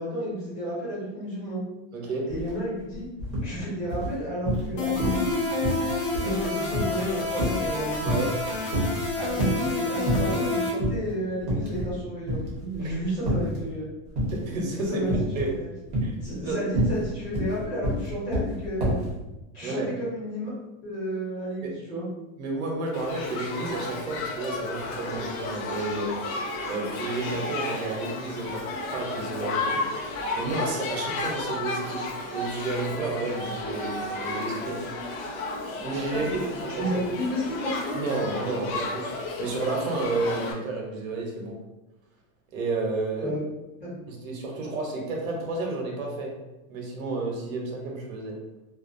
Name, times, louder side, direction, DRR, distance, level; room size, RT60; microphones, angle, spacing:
voice 1, 0.0-1.6 2.3-3.1 3.4-5.5 6.1-8.2 9.2-13.9 14.9-15.7 16.2-19.0 19.5-20.5 20.8-22.0 36.1-38.0 43.2-43.4 43.8-44.0, equal, 25° left, -10 dB, 1.1 m, -32 dB
voice 2, 1.9-2.2 8.0-8.3 12.8-13.0 14.3-15.0 15.3-15.5 16.0-16.6 19.6-19.9 22.4-26.1 26.7-29.8 30.4-32.0 32.3-34.8 35.8-37.0 37.9-39.1 39.4-41.5 42.5-43.3 44.1-46.3 46.7-48.3, right 3 dB, 75° right, -1 dB, 0.8 m, -31 dB
sound 1, 2.3-2.5 2.8-3.5 3.9-4.7 5.0-5.3 5.6-8.4 8.7-9.7 10.1-10.5 10.8-11.0 11.4-12.0 12.3-13.6 14.2-14.6 15.1-15.6 15.9-19.1, right 1 dB, 30° right, 0.6 m, -28 dB
sound 2, 4.8-10.7, left 3 dB, 45° left, 0.4 m, -29 dB
Shout / Human group actions, 22.9-40.5, left 2 dB, 80° left, 0.7 m, -33 dB
2.4 x 2.1 x 2.5 m, 1.0 s
supercardioid pair, 175°, 41 cm